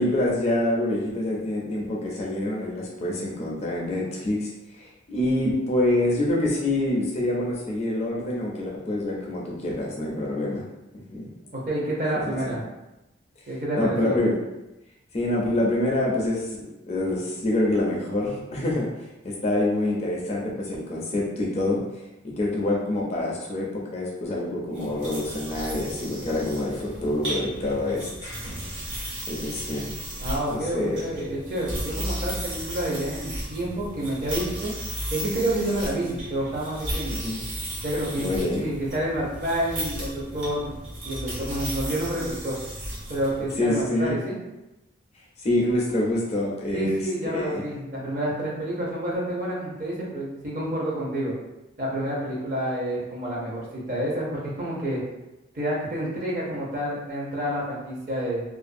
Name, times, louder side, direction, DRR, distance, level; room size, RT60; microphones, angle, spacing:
voice 1, 0.0-10.7 11.1-11.3 12.1-12.6 13.8-14.4 15.1-18.9 19.2-21.8 22.2-28.3 29.3-29.9 30.5-31.0 37.1-37.4 38.2-38.6 43.6-44.1 45.4-47.0 47.2-47.6, left 1 dB, 30° left, -3 dB, 0.4 m, -26 dB
voice 2, 11.5-12.7 13.5-14.2 30.2-34.7 35.1-37.2 37.8-40.8 41.0-42.6 43.1-44.4 46.7-51.3 51.8-55.0 55.5-58.4, right 1 dB, 40° right, -5 dB, 0.7 m, -29 dB
sound 1, 24.7-43.6, right 1 dB, 70° right, 0.9 m, -35 dB
2.4 x 2.2 x 2.5 m, 0.97 s
head